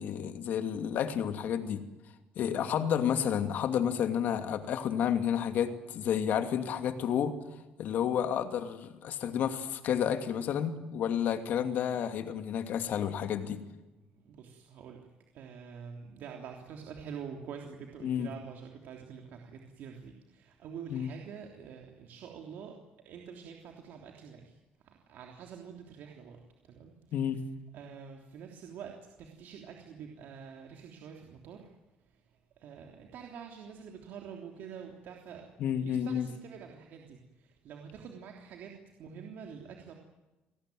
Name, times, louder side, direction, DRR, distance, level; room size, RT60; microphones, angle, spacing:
voice 1, 0.0-1.8 2.4-7.4 7.8-13.6 18.0-18.3 20.9-21.1 27.1-27.4 35.6-36.3, left 9 dB, 65° left, 8 dB, 2.6 m, -30 dB
voice 2, 14.2-15.1 15.3-22.8 23.0-24.6 24.8-27.0 27.7-31.7 32.1-32.2 32.6-39.9, right 7 dB, 70° right, 2 dB, 3.4 m, -46 dB
29.0 x 19.0 x 9.4 m, 1.1 s
cardioid pair, 125°, 3 cm